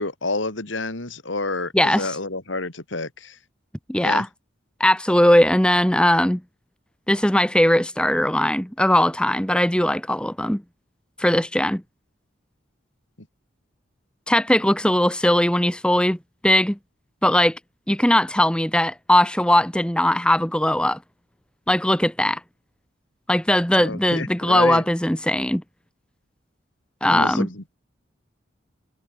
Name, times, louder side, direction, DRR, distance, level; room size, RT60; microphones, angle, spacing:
voice 1, 0.0-3.4 4.0-4.2 23.7-24.8 27.1-27.7, left 2 dB, 80° left, 3.2 m, -29 dB
voice 2, 1.7-2.1 3.9-4.3 4.8-6.4 7.1-10.6 11.2-11.8 14.3-16.2 16.4-16.8 17.2-17.6 17.9-21.0 21.7-22.4 23.3-25.6 27.0-27.5, left 1 dB, 5° left, 1.1 m, -19 dB
head